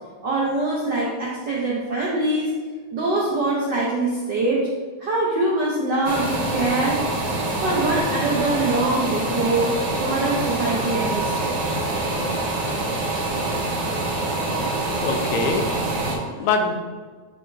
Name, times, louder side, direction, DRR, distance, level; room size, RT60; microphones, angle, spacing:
voice 1, 0.2-2.5 2.9-4.7 5.0-7.0 7.6-11.5, right 2 dB, 85° right, -5 dB, 0.9 m, -23 dB
sound 1, 6.0-16.2, right 2 dB, 60° right, 1.9 m, -25 dB
voice 2, 15.0-16.8, left 4 dB, 80° left, 4 dB, 2.0 m, -25 dB
9.8 x 3.9 x 2.7 m, 1.5 s
omnidirectional pair, 3.3 m